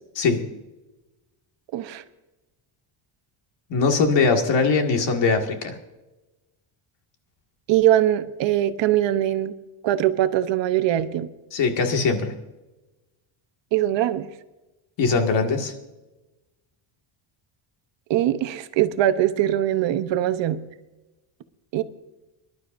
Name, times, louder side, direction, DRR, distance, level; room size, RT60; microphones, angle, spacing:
voice 1, 1.7-2.0 7.7-9.5 9.8-11.3 13.7-14.3 18.1-20.6 21.7-21.8, right 12 dB, 60° right, 10 dB, 0.9 m, -22 dB
voice 2, 3.7-5.8 11.5-12.3 15.0-15.7, left 4 dB, 60° left, 4 dB, 2.1 m, -21 dB
24.5 x 12.0 x 2.6 m, 1.0 s
cardioid pair, 160°, 49 cm